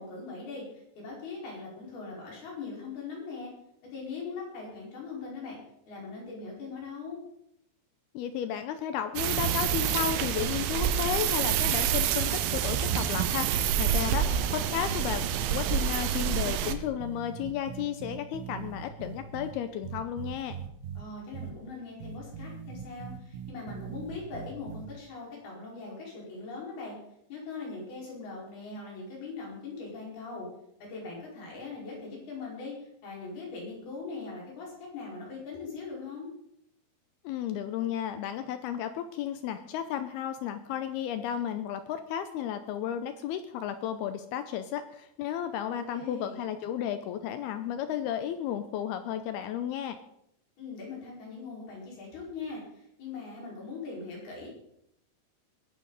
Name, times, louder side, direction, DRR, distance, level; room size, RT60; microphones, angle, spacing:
voice 1, 0.0-3.5 3.9-5.6 5.9-7.2 13.8-14.6 21.0-27.0 27.3-30.5 30.8-36.3 45.7-46.4 50.6-54.5, left 4 dB, 55° left, -3 dB, 6.8 m, -41 dB
voice 2, 8.1-15.2 15.5-20.6 37.2-50.0, left 10 dB, 85° left, 9 dB, 2.3 m, -33 dB
sound 1, 9.2-16.7, right 9 dB, 85° right, 3.3 m, -27 dB
sound 2, 14.5-15.7 16.0-16.2 16.7-19.5 19.8-21.0 21.3-21.5 22.0-24.9, right 7 dB, 60° right, 2.4 m, -40 dB
20.5 x 11.5 x 4.1 m, 0.75 s
omnidirectional pair, 5.3 m